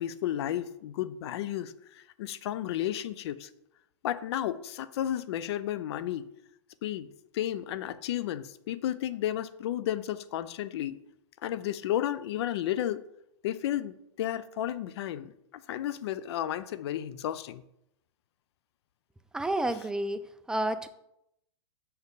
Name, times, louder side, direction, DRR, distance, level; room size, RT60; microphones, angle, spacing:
voice 1, 0.0-3.5 4.0-6.3 6.8-11.0 11.4-13.0 13.4-17.6, left 12 dB, 60° left, 0.5 m, -33 dB
voice 2, 19.3-20.2 20.5-20.9, right 1 dB, 5° right, 0.3 m, -29 dB
6.9 x 5.4 x 4.0 m
hypercardioid pair, 125°, 15 cm